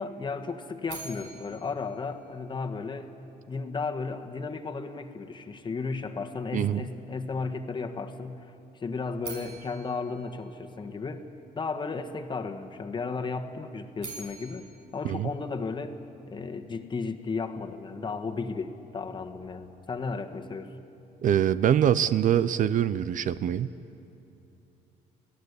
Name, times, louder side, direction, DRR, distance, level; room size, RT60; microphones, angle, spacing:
voice 1, 0.0-3.1 3.5-11.3 11.5-14.7 14.9-16.0 16.3-20.8, left 4 dB, 30° left, 5 dB, 1.5 m, -34 dB
sound 1, 0.9-3.0 9.2-11.4 13.7-16.1, right 5 dB, 85° right, 6.6 m, -46 dB
voice 2, 6.5-6.9 15.0-15.3 21.2-23.7, right 10 dB, 50° right, 15 dB, 0.6 m, -24 dB
27.0 x 17.0 x 8.3 m, 2.8 s
cardioid pair, 110°, 17 cm